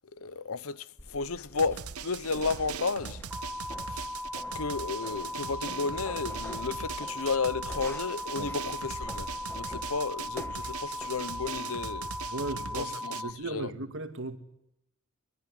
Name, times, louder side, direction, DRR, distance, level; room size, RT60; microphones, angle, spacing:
voice 1, 0.1-3.2 3.9-4.1 4.5-9.3 9.5-12.1 12.7-13.1 13.5-13.7, left 4 dB, 70° left, 0.9 m, -33 dB
sound 1, 1.0-11.6, left 1 dB, 10° left, 1.3 m, -47 dB
Drum, 1.6-13.2, right 7 dB, 80° right, 1.1 m, -41 dB
sound 2, 3.3-13.3, left 2 dB, 5° right, 1.8 m, -38 dB
voice 2, 12.3-14.4, right 2 dB, 55° right, 2.3 m, -37 dB
24.0 x 20.5 x 9.9 m
head